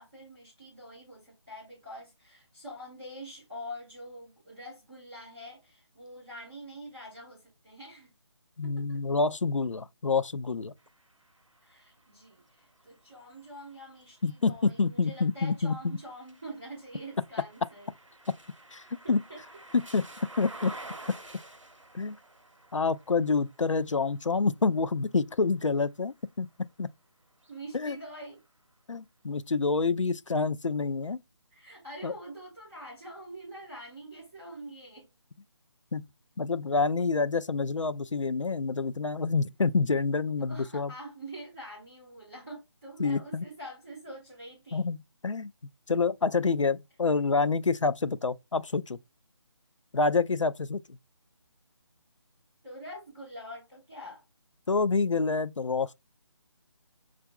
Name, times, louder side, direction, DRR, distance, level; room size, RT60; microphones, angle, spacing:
voice 1, 0.0-8.1 8.6-9.0 11.6-17.9 19.0-19.4 27.5-28.4 31.5-35.1 40.4-44.9 52.6-54.2, equal, ahead, 0.3 m, -45 dB
voice 2, 8.6-10.7 14.2-16.0 18.7-19.2 19.9-20.0 20.4-20.7 21.9-22.2 22.7-26.9 27.7-28.0 28.9-31.2 32.0-32.1 35.9-36.1 36.4-40.9 43.0-43.4 44.7-45.0 45.2-45.5 45.9-49.0 49.9-50.8 54.7-55.9, left 4 dB, 80° left, 0.4 m, -27 dB
sound 1, 10.8-26.7 27.3-28.5, right 2 dB, 85° right, 0.9 m, -51 dB
5.8 x 2.5 x 2.3 m
figure-of-eight pair, 155°, 16 cm